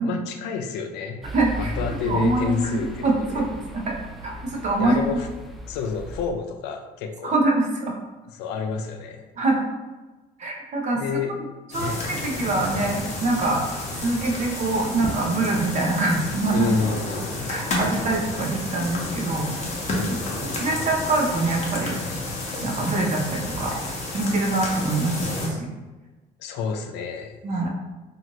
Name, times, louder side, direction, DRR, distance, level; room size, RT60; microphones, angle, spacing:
voice 1, 0.0-1.2 1.6-3.4 4.8-5.3 5.7-7.4 8.3-9.3 10.9-11.3 11.8-12.0 16.5-17.5 20.0-20.3 26.4-27.7, left 6 dB, 85° left, 5 dB, 0.4 m, -30 dB
sound 1, 1.2-6.3, right 1 dB, ahead, 0.4 m, -36 dB
voice 2, 1.3-1.7 2.0-3.5 3.7-4.0 4.2-5.0 7.2-8.0 9.4-9.6 10.4-11.0 11.7-13.6 14.0-16.7 17.5-19.6 20.6-22.0 22.6-23.8 24.1-25.7 27.4-27.7, right 2 dB, 45° right, 0 dB, 0.7 m, -24 dB
sound 2, 11.7-25.5, left 1 dB, 40° left, 0.8 m, -30 dB
3.0 x 2.4 x 2.9 m, 1.2 s
cardioid pair, 110°, 17 cm